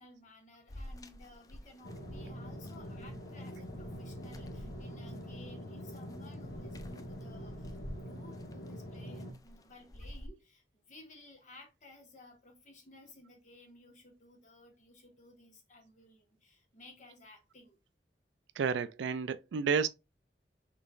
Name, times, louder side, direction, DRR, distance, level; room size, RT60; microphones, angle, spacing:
voice 1, 0.0-17.8, left 2 dB, 45° left, 1.3 m, -56 dB
sound 1, 0.7-10.3, left 1 dB, 20° left, 0.4 m, -51 dB
sound 2, 1.8-9.3, equal, 70° left, 1.5 m, -44 dB
voice 2, 18.6-19.9, right 6 dB, 85° right, 0.4 m, -31 dB
4.0 x 4.0 x 2.4 m
head